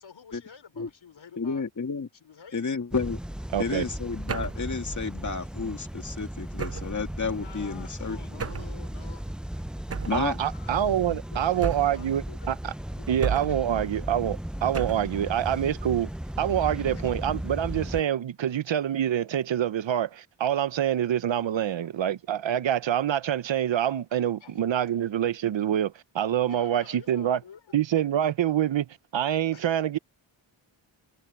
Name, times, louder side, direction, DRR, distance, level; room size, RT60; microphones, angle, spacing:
voice 1, 0.0-1.6 2.1-2.7 7.3-9.3 9.5-9.7 10.5-10.8 11.3-12.5 13.0-13.1 13.5-13.8 16.9-17.1 18.4-18.5 21.6-22.0 24.4-24.6 24.9-25.0 26.5-27.8 28.4-28.6 29.5-29.7, left 7 dB, 70° left, 4.6 m, -50 dB
voice 2, 1.4-2.1 2.5-3.2 3.6-8.4 10.1-10.4, left 4 dB, 40° left, 2.2 m, -31 dB
sound 1, 2.9-18.0, equal, ahead, 0.4 m, -36 dB
voice 3, 3.5-3.9 10.1-12.7 13.1-16.1 16.4-27.4 27.7-28.8 29.1-30.0, right 10 dB, 70° right, 0.8 m, -26 dB
sound 2, 4.3-4.7 6.6-7.0 8.4-8.8 9.9-10.3 11.6-12.1 13.2-13.7 14.7-15.2, right 5 dB, 30° right, 0.7 m, -32 dB
wide cardioid pair, 110°, 47 cm